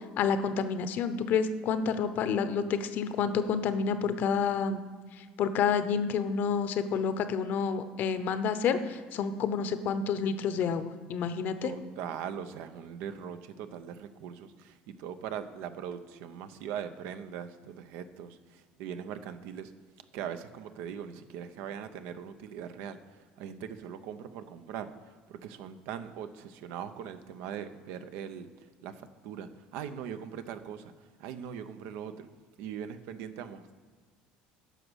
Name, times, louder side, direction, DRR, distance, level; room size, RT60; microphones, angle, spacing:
voice 1, 0.2-4.8 5.2-11.7, left 6 dB, 55° left, 11 dB, 0.8 m, -29 dB
voice 2, 11.6-19.7 20.1-30.9 31.2-32.3 32.6-33.7, right 8 dB, 75° right, 10 dB, 0.7 m, -41 dB
10.0 x 6.2 x 6.3 m, 1.5 s
cardioid pair, 115°, 4 cm